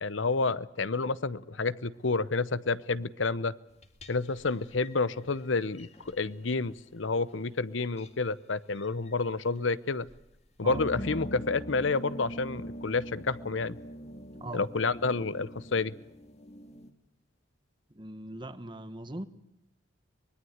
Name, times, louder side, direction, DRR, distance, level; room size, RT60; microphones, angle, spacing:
voice 1, 0.0-3.5 4.1-10.1 10.6-13.8 14.5-15.9, left 3 dB, 75° left, 0.9 m, -29 dB
sound 1, 3.7-6.3 7.3-7.4 8.0-8.1 8.7-9.1 10.0-10.2 10.5-16.9, equal, 35° left, 1.9 m, -43 dB
voice 2, 17.9-19.2, right 1 dB, 25° right, 1.2 m, -40 dB
24.0 x 21.0 x 8.0 m
head